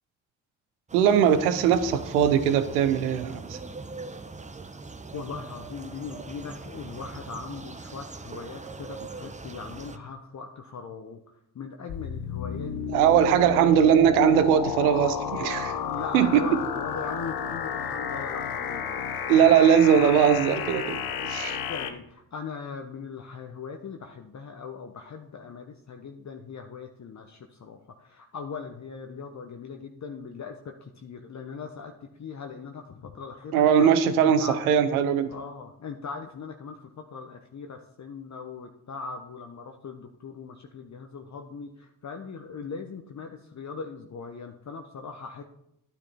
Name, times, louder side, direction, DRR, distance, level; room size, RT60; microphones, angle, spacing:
sound 1, 0.9-10.0, right 3 dB, 15° right, 0.9 m, -41 dB
voice 1, 0.9-3.6 12.9-15.8 16.1-16.5 19.3-21.6 33.5-35.3, right 8 dB, 85° right, 11 dB, 0.8 m, -20 dB
voice 2, 5.1-13.7 15.7-19.6 20.0-20.2 21.7-33.9 34.2-34.6 35.3-45.4, left 5 dB, 40° left, 4 dB, 1.1 m, -40 dB
sound 2, 11.9-21.9, left 7 dB, 65° left, 1.1 m, -32 dB
11.5 x 9.1 x 4.3 m, 0.79 s
hypercardioid pair, 45°, 43 cm